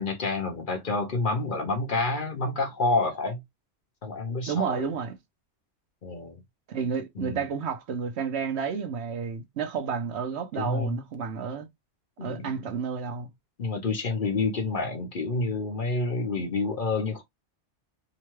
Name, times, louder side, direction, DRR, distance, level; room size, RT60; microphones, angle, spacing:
voice 1, 0.0-3.4 4.0-4.9 6.0-6.4 7.2-7.4 10.6-11.0 12.2-12.7 13.6-17.2, left 3 dB, 50° left, 0.8 m, -28 dB
voice 2, 4.5-5.2 6.7-11.7 12.2-13.3, right 6 dB, 65° right, 0.9 m, -31 dB
2.9 x 2.2 x 3.0 m
omnidirectional pair, 1.2 m